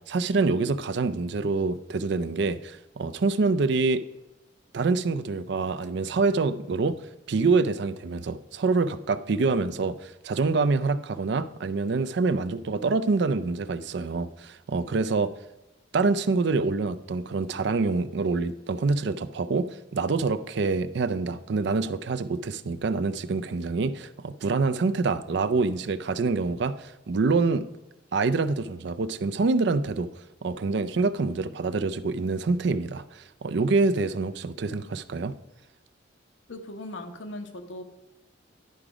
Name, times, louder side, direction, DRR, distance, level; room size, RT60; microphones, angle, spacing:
voice 1, 0.1-4.0 4.7-7.0 7.3-15.3 15.9-27.7 28.1-30.1 30.4-35.3, right 3 dB, 65° right, 14 dB, 0.4 m, -26 dB
voice 2, 36.5-37.8, left 1 dB, 85° left, 6 dB, 1.1 m, -38 dB
10.5 x 4.9 x 4.9 m, 1.0 s
head